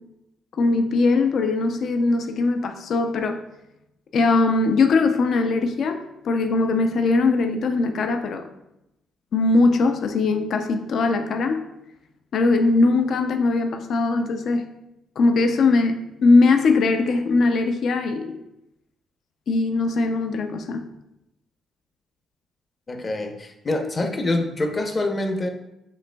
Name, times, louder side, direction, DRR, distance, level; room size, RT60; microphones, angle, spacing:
voice 1, 0.6-3.4 4.1-8.4 9.3-11.6 12.3-14.6 15.2-18.4 19.5-20.8, left 3 dB, 65° left, 6 dB, 0.4 m, -20 dB
voice 2, 22.9-25.5, left 2 dB, 30° left, 4 dB, 0.7 m, -25 dB
7.6 x 3.0 x 2.2 m, 0.87 s
cardioid pair, 90°, 0 cm